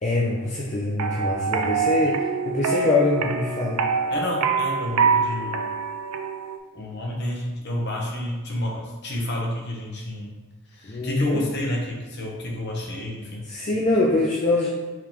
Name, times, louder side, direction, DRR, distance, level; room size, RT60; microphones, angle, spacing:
voice 1, 0.0-3.9 10.8-11.4 13.4-14.7, left 2 dB, 30° left, -4 dB, 0.5 m, -23 dB
sound 1, 1.0-6.6, right 5 dB, 90° right, 0.5 m, -25 dB
voice 2, 4.1-5.6 6.7-10.3 10.7-13.4 13.7-13.8, left 1 dB, 50° left, -1 dB, 0.8 m, -30 dB
4.8 x 3.0 x 3.5 m, 1.3 s
head